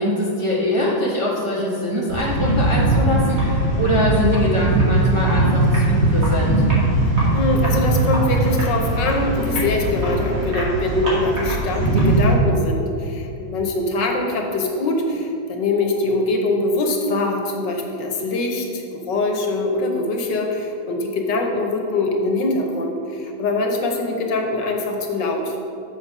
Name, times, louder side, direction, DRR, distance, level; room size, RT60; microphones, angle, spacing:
voice 1, 0.0-6.6, left 1 dB, 20° right, -5 dB, 0.9 m, -23 dB
sound 1, 2.1-12.3, right 1 dB, 45° right, 2.5 m, -20 dB
voice 2, 7.3-25.6, left 2 dB, 70° left, 2 dB, 1.5 m, -23 dB
6.7 x 6.7 x 5.4 m, 2.7 s
omnidirectional pair, 2.1 m